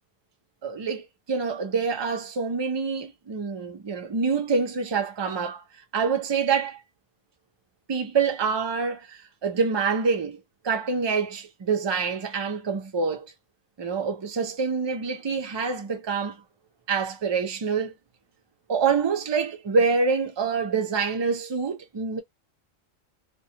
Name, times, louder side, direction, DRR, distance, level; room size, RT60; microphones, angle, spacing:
voice 1, 0.6-5.6 5.9-6.8 7.9-10.4 10.6-13.3 13.8-16.3 16.9-17.9 18.7-22.2, right 5 dB, 45° right, 0.3 m, -26 dB
2.3 x 2.2 x 2.8 m
omnidirectional pair, 1.3 m